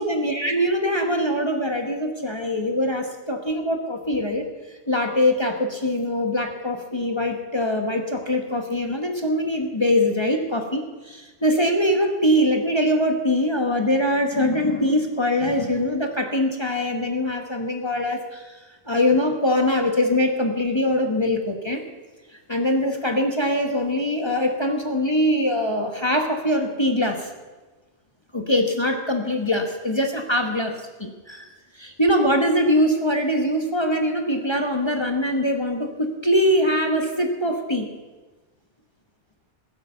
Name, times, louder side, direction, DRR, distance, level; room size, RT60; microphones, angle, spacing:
voice 1, 0.0-4.4 4.9-18.6 18.9-21.8 22.5-27.3 28.3-37.9, left 1 dB, 25° left, 3 dB, 1.2 m, -23 dB
16.0 x 9.6 x 6.9 m, 1.2 s
omnidirectional pair, 1.2 m